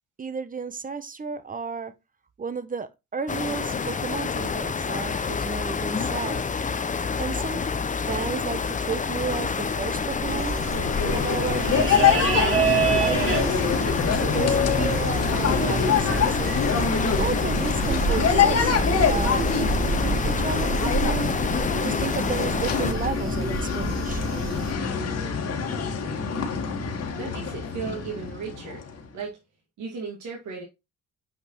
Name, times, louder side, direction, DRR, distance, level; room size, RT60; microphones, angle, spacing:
voice 1, 0.2-1.9 2.4-6.5 7.2-7.6 8.1-10.6 11.0-13.6 14.0-15.1 15.4-16.6 17.2-21.3 21.8-24.4, right 5 dB, 25° right, 0.9 m, -33 dB
sound 1, 3.3-22.9, left 5 dB, 25° left, 0.7 m, -28 dB
sound 2, 10.3-24.7, right 3 dB, 40° right, 3.2 m, -28 dB
sound 3, 10.5-29.0, left 6 dB, 55° left, 1.8 m, -26 dB
voice 2, 27.1-28.8 29.1-29.4 29.8-30.6, right 5 dB, 75° right, 2.3 m, -35 dB
8.9 x 5.3 x 3.1 m
cardioid pair, 90°, 30 cm